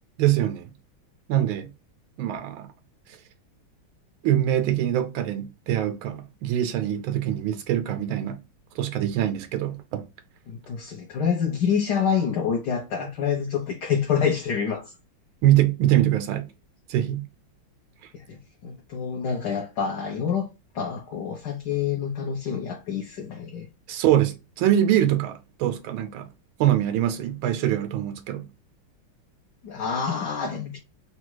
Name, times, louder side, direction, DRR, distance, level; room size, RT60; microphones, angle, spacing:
voice 1, 0.2-0.7 1.3-1.7 2.2-2.7 4.2-8.4 8.8-10.1 15.4-16.5 16.9-17.3 23.9-26.3 26.6-28.5, right 12 dB, 85° right, 1.4 m, -23 dB
voice 2, 10.5-14.9 18.1-20.5 20.7-23.7 29.6-30.8, left 7 dB, 65° left, 1.2 m, -27 dB
4.0 x 2.3 x 4.5 m
omnidirectional pair, 2.2 m